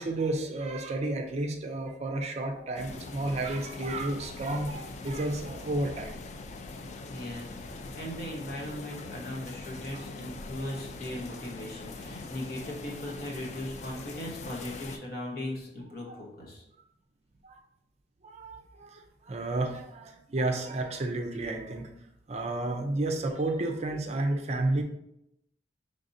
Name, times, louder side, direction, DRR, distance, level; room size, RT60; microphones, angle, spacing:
voice 1, 0.0-6.1 9.9-10.0 16.1-16.2 17.4-17.6 18.2-21.9 22.3-24.8, right 2 dB, 35° right, 4 dB, 0.5 m, -31 dB
sound 1, 2.8-15.0, left 3 dB, 40° left, 0.3 m, -42 dB
voice 2, 7.1-16.6, left 1 dB, 55° left, -2 dB, 1.1 m, -38 dB
5.2 x 3.5 x 2.6 m, 0.81 s
head